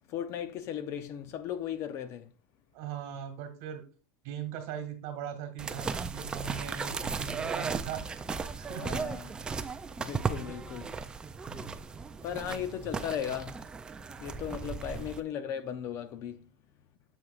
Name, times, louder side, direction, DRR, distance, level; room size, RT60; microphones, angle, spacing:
voice 1, 0.1-2.3 8.8-9.3 10.0-10.9 12.2-13.6 14.2-16.5, left 9 dB, 35° left, 0.5 m, -36 dB
voice 2, 2.7-3.8 4.2-8.0 8.6-9.0 11.5-11.8 14.6-14.9, right 8 dB, 50° right, 2.0 m, -39 dB
sound 1, 5.6-15.2, right 5 dB, 10° right, 0.3 m, -36 dB
7.8 x 7.1 x 2.4 m
supercardioid pair, 170°, 8 cm